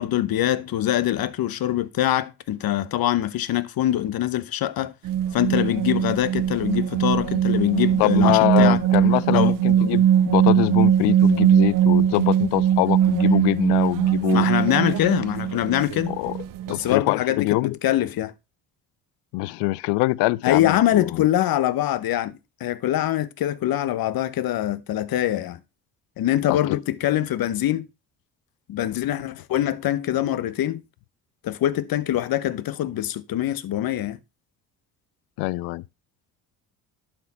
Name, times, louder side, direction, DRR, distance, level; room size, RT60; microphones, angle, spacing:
voice 1, 0.0-4.9 5.3-8.8 9.3-9.6 14.3-16.2 16.7-18.3 20.4-22.3 22.6-25.6 26.2-27.9 28.7-30.8 31.4-34.2, left 12 dB, 60° left, 0.9 m, -24 dB
sound 1, 5.0-16.9, right 10 dB, 55° right, 0.6 m, -20 dB
voice 2, 8.0-14.5 16.1-16.3 16.7-17.8 19.3-21.1 26.5-26.8 35.4-35.8, left 20 dB, 80° left, 0.5 m, -23 dB
11.5 x 4.4 x 4.0 m
supercardioid pair, 65°, 40 cm